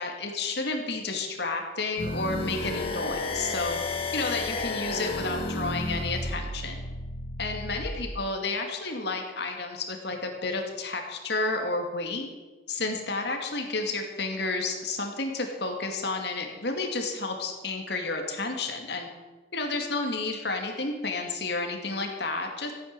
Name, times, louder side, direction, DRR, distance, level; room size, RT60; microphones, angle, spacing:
voice 1, 0.0-3.8 4.1-6.8 7.4-12.3 12.7-19.1 19.5-22.7, left 3 dB, 65° left, 3 dB, 2.4 m, -31 dB
sound 1, 2.0-7.9, left 2 dB, 30° left, 2.0 m, -32 dB
15.0 x 9.2 x 6.8 m, 1.3 s
head